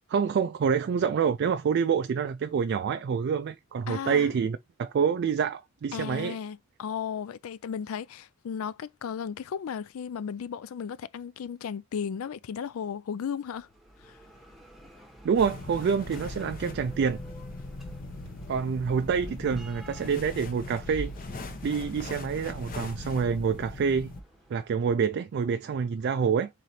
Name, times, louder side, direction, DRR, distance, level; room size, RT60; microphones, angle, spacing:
voice 1, 0.1-6.4 15.2-17.2 18.5-21.1 21.6-24.1 24.5-26.5, right 6 dB, 55° right, 0.3 m, -27 dB
voice 2, 3.9-4.4 5.9-13.7 14.0-14.2, left 7 dB, 85° left, 0.4 m, -35 dB
Bell, 13.4-25.2, right 1 dB, ahead, 0.9 m, -52 dB
sound 1, 15.4-24.2, left 2 dB, 45° left, 0.7 m, -40 dB
3.8 x 3.2 x 4.1 m
head